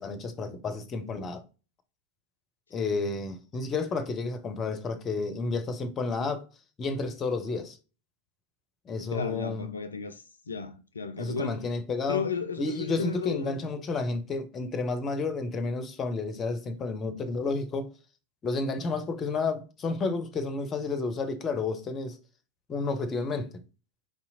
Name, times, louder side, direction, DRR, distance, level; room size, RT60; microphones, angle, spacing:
voice 1, 0.0-1.4 2.7-6.5 6.8-7.8 8.9-9.7 11.2-12.2 12.6-17.9 18.4-22.2 22.7-23.5, left 3 dB, 25° left, 0.6 m, -31 dB
voice 2, 9.1-11.6 12.1-13.6, left 5 dB, 75° left, 0.3 m, -34 dB
4.6 x 2.8 x 2.6 m
figure-of-eight pair, 90°, 0 cm